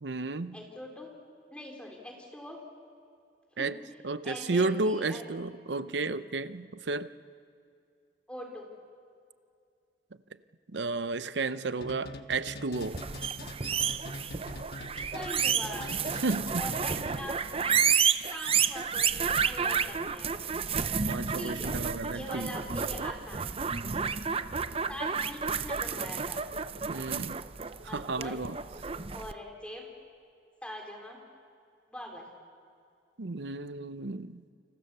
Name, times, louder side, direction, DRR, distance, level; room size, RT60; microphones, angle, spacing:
voice 1, 0.0-0.6 3.6-3.8 4.0-7.1 10.7-13.0 16.2-16.6 21.1-22.5 26.9-27.4 27.8-28.6 33.2-34.4, right 3 dB, 80° right, 0.8 m, -32 dB
voice 2, 0.5-1.1 1.5-2.6 3.6-3.8 4.2-5.3 8.3-8.7 15.1-15.9 16.6-17.8 18.3-20.3 21.3-21.8 22.1-23.4 24.9-26.4 27.9-28.4 29.1-29.9 30.6-31.2 31.9-32.2, equal, 5° left, 3.7 m, -42 dB
sound 1, 11.8-17.3, left 2 dB, 60° left, 1.3 m, -43 dB
sound 2, 12.8-29.3, right 6 dB, 35° right, 0.6 m, -31 dB
29.0 x 26.0 x 6.8 m
head